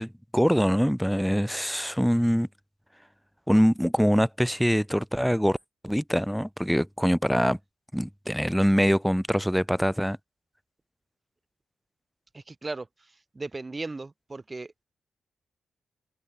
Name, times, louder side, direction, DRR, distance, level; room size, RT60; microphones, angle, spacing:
voice 1, 0.0-2.5 3.5-5.6 5.8-7.6 7.9-10.2, equal, ahead, 1.2 m, -24 dB
voice 2, 12.3-14.8, right 3 dB, 25° right, 1.9 m, -37 dB
cardioid pair, 75°, 0 cm